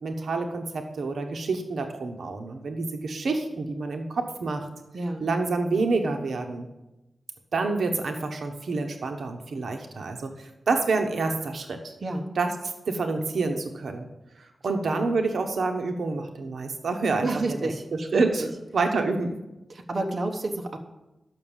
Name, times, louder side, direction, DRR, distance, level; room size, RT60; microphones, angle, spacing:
voice 1, 0.0-4.7 5.2-6.7 7.5-11.9 12.4-12.5 12.9-14.1 14.6-17.3 17.6-17.7 18.1-18.4 18.7-19.4, right 3 dB, 65° right, 5 dB, 1.0 m, -27 dB
voice 2, 4.9-5.3 12.0-12.3 17.2-17.8 18.1-18.5 19.7-20.8, right 2 dB, 40° right, 2 dB, 1.0 m, -30 dB
11.5 x 6.0 x 7.2 m, 0.98 s
wide cardioid pair, 170°, 0 cm